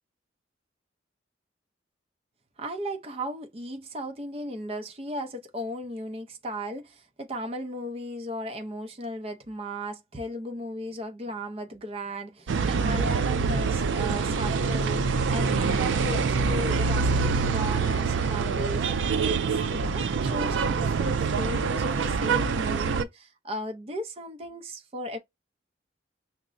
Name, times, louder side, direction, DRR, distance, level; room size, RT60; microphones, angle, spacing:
voice 1, 2.6-18.9 19.2-25.2, equal, 35° right, 0.5 m, -36 dB
sound 1, 12.5-23.0, right 5 dB, 90° right, 0.4 m, -25 dB
5.7 x 2.1 x 2.5 m
head